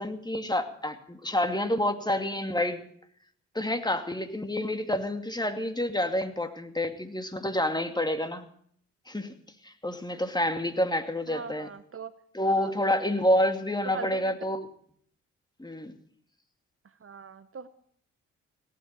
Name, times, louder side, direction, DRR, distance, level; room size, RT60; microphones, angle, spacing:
voice 1, 0.0-2.9 3.5-8.4 9.1-9.3 9.6-11.7 12.3-14.7 15.6-15.9, left 1 dB, 10° left, 8 dB, 2.4 m, -28 dB
voice 2, 11.3-12.1 12.4-12.7 13.8-14.3 17.0-17.7, right 6 dB, 40° right, 13 dB, 1.0 m, -40 dB
17.5 x 9.2 x 8.9 m, 0.62 s
hypercardioid pair, 50°, 34 cm